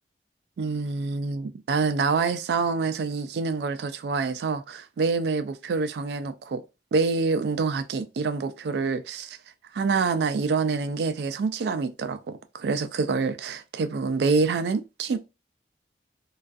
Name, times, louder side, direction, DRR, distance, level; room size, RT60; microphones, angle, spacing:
voice 1, 0.6-6.6 6.9-9.4 9.7-15.2, right 4 dB, 65° right, 0.3 m, -26 dB
2.3 x 2.3 x 2.5 m
head